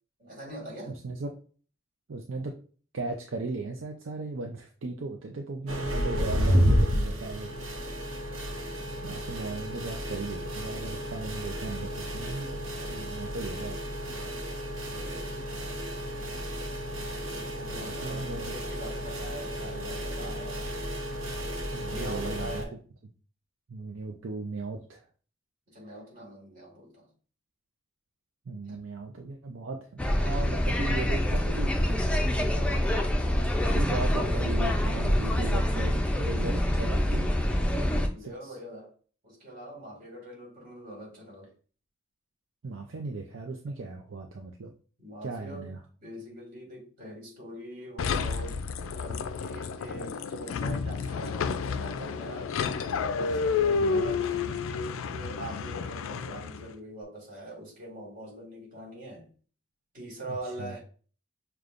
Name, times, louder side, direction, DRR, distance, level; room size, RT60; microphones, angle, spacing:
voice 1, 0.2-1.0 14.8-15.7 17.2-20.6 21.9-22.8 25.7-27.1 28.7-28.8 38.0-38.9 39.2-41.5 45.0-45.7 46.0-48.6 48.9-52.6 53.1-59.3 59.9-60.8, right 1 dB, 45° right, 2.0 m, -43 dB
voice 2, 2.1-2.6 2.9-7.9 9.0-13.9 17.8-18.4 21.7-22.6 23.7-25.0 28.5-32.9 33.4-33.5 33.7-37.3 38.2-38.5 42.6-44.7 45.2-45.8 53.7-54.1 60.3-60.7, right 3 dB, 70° right, 0.5 m, -37 dB
sound 1, 5.7-22.6, equal, 85° right, 0.9 m, -31 dB
sound 2, 30.0-38.1, left 1 dB, 5° left, 0.5 m, -26 dB
sound 3, 48.0-56.7, left 5 dB, 85° left, 0.4 m, -30 dB
6.5 x 2.3 x 2.5 m
head